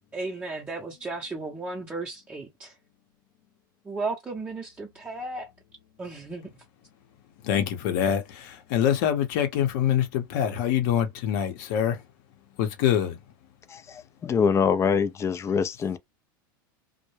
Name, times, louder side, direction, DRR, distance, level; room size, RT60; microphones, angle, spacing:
voice 1, 0.1-2.7 3.8-5.5 6.0-6.5, right 3 dB, 15° right, 0.7 m, -34 dB
voice 2, 7.4-12.0 12.6-13.2, left 9 dB, 60° left, 0.8 m, -25 dB
voice 3, 13.7-16.0, left 6 dB, 25° left, 0.4 m, -24 dB
2.2 x 2.1 x 3.1 m
hypercardioid pair, 95°, 11 cm